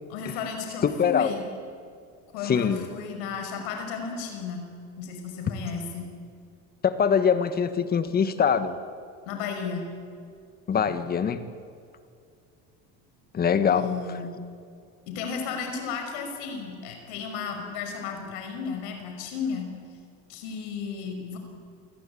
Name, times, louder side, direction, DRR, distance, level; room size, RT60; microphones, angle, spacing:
voice 1, 0.1-1.4 2.3-4.7 5.0-6.1 9.3-9.9 13.7-14.4 15.1-19.7 20.3-21.4, left 6 dB, 85° left, 4 dB, 5.8 m, -34 dB
voice 2, 0.8-1.4 2.4-2.9 6.8-8.8 10.7-11.4 13.3-14.2, left 7 dB, 30° left, 11 dB, 1.7 m, -23 dB
28.0 x 19.0 x 8.7 m, 2.3 s
cardioid pair, 135°, 32 cm